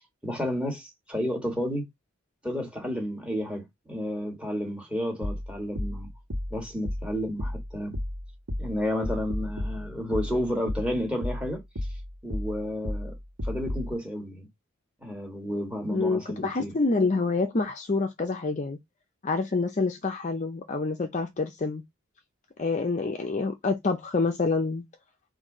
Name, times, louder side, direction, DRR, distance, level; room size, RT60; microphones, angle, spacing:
voice 1, 0.2-1.9 2.4-6.1 6.5-8.0 8.6-11.6 12.2-13.1 13.4-14.5 15.0-16.7, equal, 5° right, 1.5 m, -31 dB
sound 1, 5.2-13.9, left 1 dB, 80° right, 1.3 m, -34 dB
voice 2, 15.9-18.8 19.2-21.8 22.6-24.8, left 3 dB, 35° left, 0.5 m, -27 dB
4.1 x 2.6 x 4.8 m
head